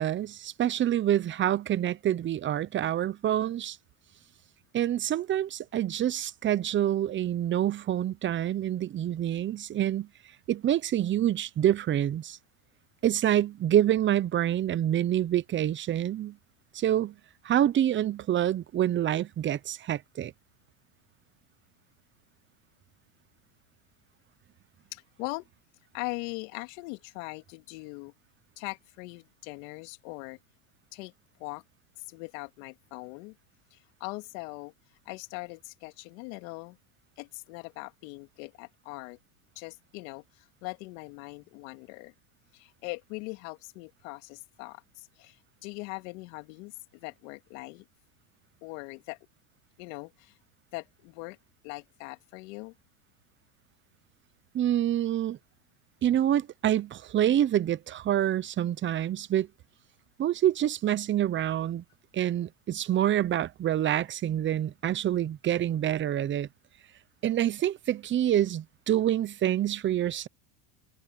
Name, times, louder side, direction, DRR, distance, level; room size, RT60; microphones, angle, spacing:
voice 1, 0.0-3.8 4.7-10.1 10.5-12.4 13.0-16.4 16.7-17.1 17.4-20.3 54.5-55.4 56.0-59.5 60.2-61.8 62.1-66.5 67.2-70.3, right 11 dB, 25° right, 0.9 m, -27 dB
voice 2, 24.9-25.5 25.9-28.1 28.6-30.4 30.9-31.1 31.4-31.6 32.0-33.4 33.7-34.7 35.0-36.8 37.2-39.2 39.6-42.1 42.5-47.9 48.6-49.2 49.8-50.4 50.7-51.4 51.6-52.7, left 27 dB, 65° left, 2.8 m, -41 dB
supercardioid pair, 115°, 43 cm